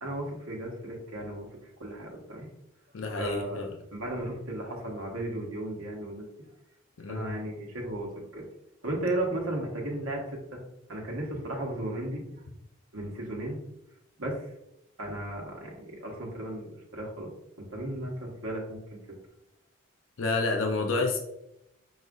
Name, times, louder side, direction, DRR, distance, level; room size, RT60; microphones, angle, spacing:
voice 1, 0.0-2.5 3.2-6.3 7.1-8.5 8.8-10.6 10.9-12.2 12.9-13.6 14.2-14.4 15.0-17.3 17.6-19.0, right 1 dB, 85° right, -1 dB, 1.1 m, -35 dB
voice 2, 2.9-3.8 7.0-7.3 20.2-21.2, left 3 dB, 75° left, 3 dB, 0.6 m, -29 dB
4.9 x 4.1 x 2.5 m, 0.84 s
head